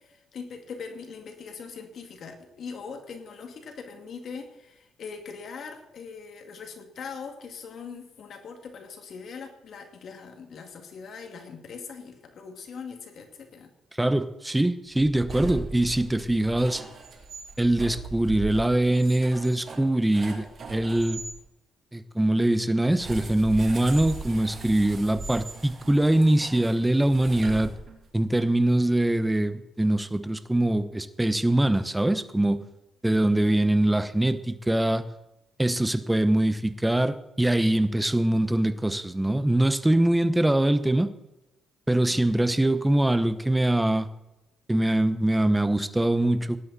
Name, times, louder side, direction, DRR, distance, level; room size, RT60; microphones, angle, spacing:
voice 1, 0.0-13.7 14.0-14.2 33.3-33.7 42.1-42.2, left 5 dB, 60° left, 4 dB, 2.3 m, -41 dB
voice 2, 14.0-16.8 17.6-21.2 21.9-27.7 28.1-32.6 33.0-35.0 35.6-41.1 41.9-44.1 44.7-46.6, right 1 dB, 10° right, 12 dB, 1.0 m, -23 dB
sound 1, 14.9-21.3 22.9-28.1, right 3 dB, 50° right, 3.6 m, -39 dB
18.0 x 11.0 x 4.2 m, 0.92 s
cardioid pair, 90°, 0 cm